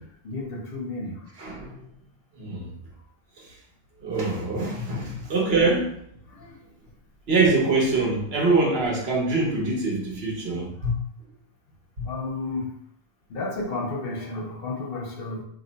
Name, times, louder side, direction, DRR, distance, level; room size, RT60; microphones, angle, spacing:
voice 1, 0.0-1.3 5.0-5.1 6.3-6.6 10.8-10.9 12.0-12.8 13.3-15.4, left 3 dB, 70° left, 0 dB, 0.9 m, -32 dB
voice 2, 1.4-1.9 2.3-2.7 3.4-3.6 4.0-6.0 7.3-11.0 12.0-12.1, right 3 dB, 75° right, -1 dB, 1.1 m, -24 dB
2.6 x 2.2 x 3.8 m, 0.67 s
omnidirectional pair, 1.0 m